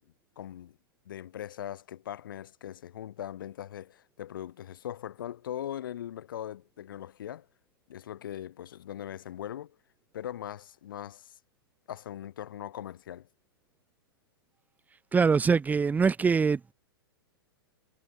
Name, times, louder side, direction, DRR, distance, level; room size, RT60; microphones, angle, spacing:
voice 1, 0.4-0.8 1.1-7.5 7.9-9.8 10.1-11.4 11.9-13.3, left 11 dB, 60° left, 5.8 m, -40 dB
voice 2, 15.1-16.7, right 5 dB, 15° right, 1.8 m, -23 dB
figure-of-eight pair, 105°, 12 cm